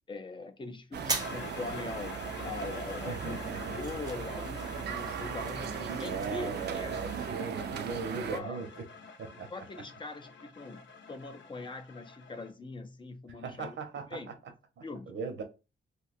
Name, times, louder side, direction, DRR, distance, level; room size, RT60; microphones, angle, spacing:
voice 1, 0.1-2.2 2.4-7.9 8.3-8.6 9.5-13.8 14.1-14.3 14.8-15.1, left 3 dB, 25° left, 0.4 m, -42 dB
sound 1, 0.9-7.3, right 3 dB, 20° right, 0.6 m, -41 dB
sound 2, 0.9-8.4, right 7 dB, 65° right, 0.4 m, -38 dB
sound 3, 1.1-12.5, left 4 dB, 75° left, 0.6 m, -47 dB
voice 2, 3.1-3.8 5.9-8.7 9.2-9.5 13.4-14.0 14.8-15.4, right 5 dB, 85° right, 0.8 m, -39 dB
2.7 x 2.2 x 4.1 m
wide cardioid pair, 120°, 19 cm